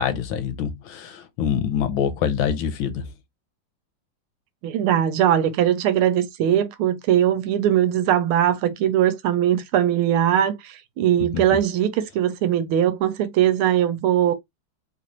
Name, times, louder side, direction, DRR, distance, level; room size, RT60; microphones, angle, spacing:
voice 1, 0.0-3.1 11.2-11.4, left 8 dB, 80° left, 1.4 m, -25 dB
voice 2, 4.6-14.3, right 10 dB, 85° right, 1.5 m, -20 dB
3.5 x 2.5 x 2.9 m
omnidirectional pair, 2.3 m